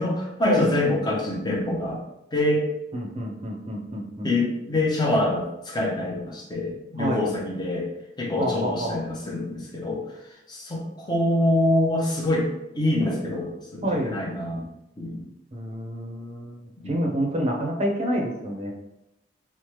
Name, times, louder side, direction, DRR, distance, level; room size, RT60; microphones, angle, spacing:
voice 1, 0.0-2.0 2.3-2.6 4.2-7.9 8.2-10.0 10.5-12.5 12.7-14.7 15.0-15.3 16.8-17.2, left 1 dB, 25° left, -2 dB, 0.6 m, -25 dB
voice 2, 2.9-4.3 7.0-7.3 8.4-9.0 13.8-14.2 15.5-18.7, right 1 dB, 35° right, 0 dB, 0.5 m, -28 dB
3.1 x 2.1 x 2.9 m, 0.90 s
head